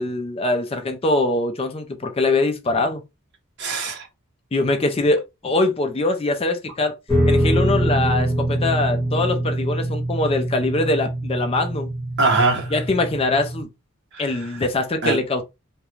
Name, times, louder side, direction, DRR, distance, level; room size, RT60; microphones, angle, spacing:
voice 1, 0.0-3.0 4.5-7.0 7.3-11.9 12.7-13.7 14.2-15.4, left 2 dB, 25° left, 0.4 m, -22 dB
voice 2, 3.6-4.1 12.2-12.8 14.1-14.6 15.0-15.2, right 3 dB, 50° right, 0.8 m, -22 dB
sound 1, 7.1-13.6, right 1 dB, 5° left, 1.2 m, -23 dB
2.4 x 2.2 x 3.0 m
head